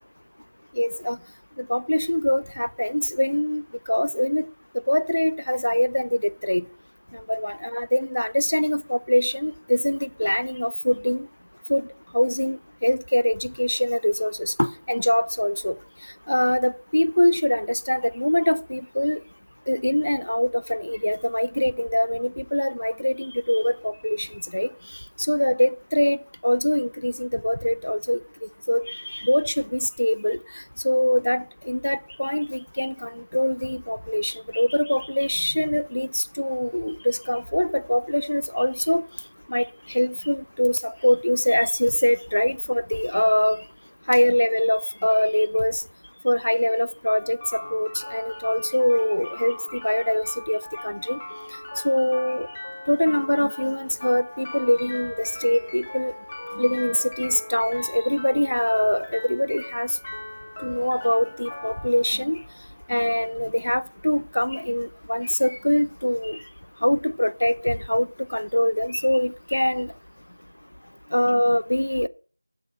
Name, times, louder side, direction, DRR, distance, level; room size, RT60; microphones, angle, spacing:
voice 1, 0.8-1.2 1.6-4.5 4.9-6.7 7.1-11.3 11.7-11.8 12.1-15.8 16.3-19.2 19.7-24.7 25.2-28.2 28.7-39.1 39.5-43.6 44.1-45.8 46.2-51.2 51.8-52.5 52.9-56.1 56.6-60.0 60.6-62.4 62.9-66.4 66.8-69.9 71.1-72.1, left 1 dB, 70° left, 0.6 m, -23 dB
sound 1, 47.1-63.1, left 1 dB, 20° left, 1.1 m, -39 dB
7.6 x 7.6 x 5.4 m
figure-of-eight pair, 180°, 0 cm